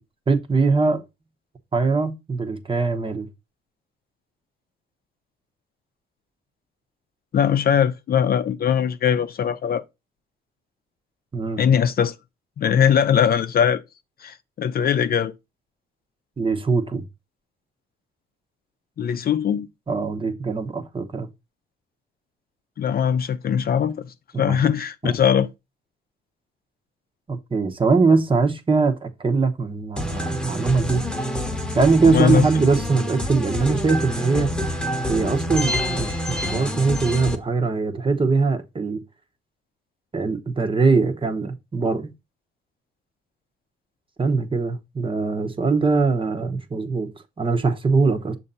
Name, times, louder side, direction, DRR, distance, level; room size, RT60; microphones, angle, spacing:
voice 1, 0.3-1.0 1.7-3.3 11.3-11.6 16.4-17.0 19.9-21.3 24.5-24.6 25.0-25.2 27.3-31.0 31.7-34.5 35.1-39.0 40.1-42.1 44.2-47.1 47.4-48.4, right 4 dB, 25° right, 0.9 m, -21 dB
voice 2, 7.3-9.8 11.6-12.1 12.6-13.8 14.2-15.3 19.0-19.7 22.8-24.0 24.4-25.5 32.0-32.4, left 8 dB, 50° left, 0.5 m, -20 dB
sound 1, 30.0-37.4, equal, 5° left, 1.0 m, -27 dB
6.4 x 2.7 x 5.4 m
cardioid pair, 90°, 20 cm